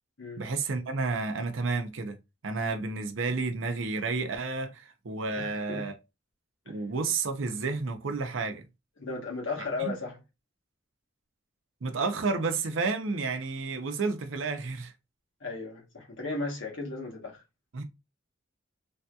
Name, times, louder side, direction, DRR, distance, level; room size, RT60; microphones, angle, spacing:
voice 1, 0.4-2.2 2.4-6.0 6.7-8.6 9.6-9.9 11.8-14.9 17.7-17.8, right 4 dB, 80° right, 0.6 m, -31 dB
voice 2, 5.3-5.9 6.7-6.8 9.0-10.2 15.4-17.4, left 3 dB, 75° left, 1.1 m, -35 dB
3.3 x 2.7 x 2.3 m
head